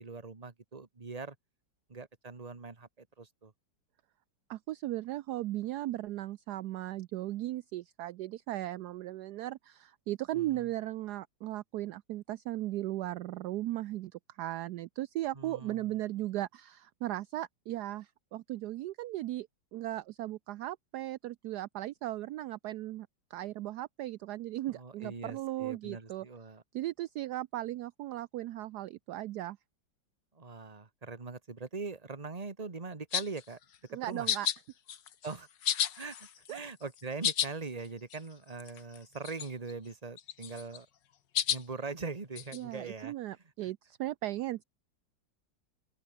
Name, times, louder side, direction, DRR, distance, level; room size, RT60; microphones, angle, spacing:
voice 1, 0.0-1.3 1.9-3.5 10.3-10.7 15.3-16.0 24.7-26.6 30.3-33.6 33.9-34.3 35.2-35.5 36.0-40.9 41.5-43.1 43.6-43.7, right 4 dB, 20° right, 1.7 m, -42 dB
voice 2, 4.5-26.2 26.7-29.6 33.9-34.5 36.5-36.6 42.5-44.6, right 15 dB, 70° right, 1.1 m, -37 dB
sound 1, 33.1-33.4 34.3-34.6 34.9-35.4 35.6-36.6 37.0-37.5 37.8-37.9 38.1-38.2 38.6-39.0 39.2-39.7 40.2-40.8 41.3-41.6 42.4-42.6, left 9 dB, 75° left, 1.9 m, -32 dB
open air
omnidirectional pair, 1.9 m